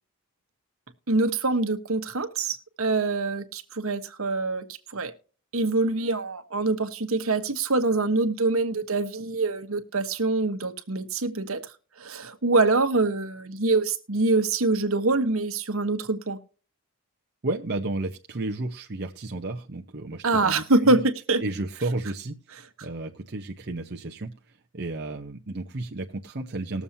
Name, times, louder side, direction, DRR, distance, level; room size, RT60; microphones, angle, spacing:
voice 1, 1.1-4.6 4.9-5.1 5.5-11.7 12.0-16.4 20.2-21.4, right 3 dB, 70° right, 9 dB, 1.2 m, -25 dB
voice 2, 17.4-21.0 21.4-26.8, right 2 dB, 50° right, 3 dB, 0.8 m, -33 dB
20.0 x 7.2 x 2.8 m, 0.38 s
head